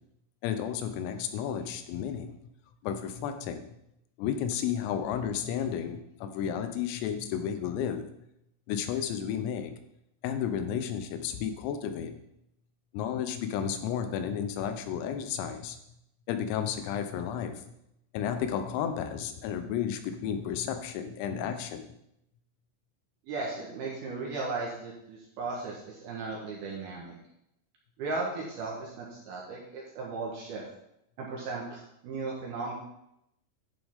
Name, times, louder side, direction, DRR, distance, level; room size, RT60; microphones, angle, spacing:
voice 1, 0.4-2.4 2.8-3.6 4.2-8.1 8.7-9.8 10.2-12.2 12.9-15.8 16.3-17.5 18.1-21.9, left 8 dB, 85° left, 8 dB, 3.6 m, -32 dB
voice 2, 23.3-27.1 28.0-30.6 31.2-32.7, right 3 dB, 70° right, -3 dB, 2.5 m, -36 dB
11.5 x 7.1 x 3.6 m, 0.80 s
omnidirectional pair, 5.9 m